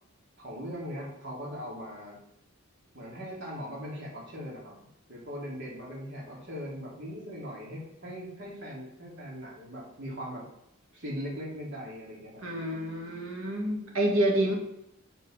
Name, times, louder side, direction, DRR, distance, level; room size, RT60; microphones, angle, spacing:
voice 1, 0.4-2.2 2.9-4.7 5.1-10.4 10.9-12.4, equal, 55° right, -4 dB, 3.2 m, -40 dB
voice 2, 12.4-14.5, right 1 dB, 70° right, 0 dB, 2.1 m, -28 dB
7.8 x 5.1 x 5.9 m, 0.80 s
head